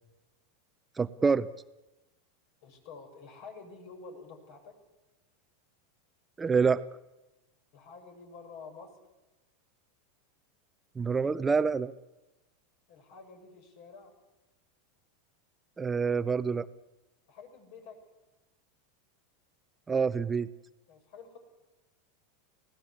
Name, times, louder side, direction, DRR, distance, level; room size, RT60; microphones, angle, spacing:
voice 1, 1.0-1.5 6.4-6.8 11.0-11.9 15.8-16.7 19.9-20.5, right 5 dB, 15° right, 13 dB, 0.8 m, -26 dB
voice 2, 2.6-4.8 7.7-9.0 12.9-14.1 17.3-18.0 20.9-21.4, left 4 dB, 55° left, 5 dB, 7.2 m, -49 dB
30.0 x 17.5 x 8.4 m, 1.0 s
figure-of-eight pair, 85°, 0 cm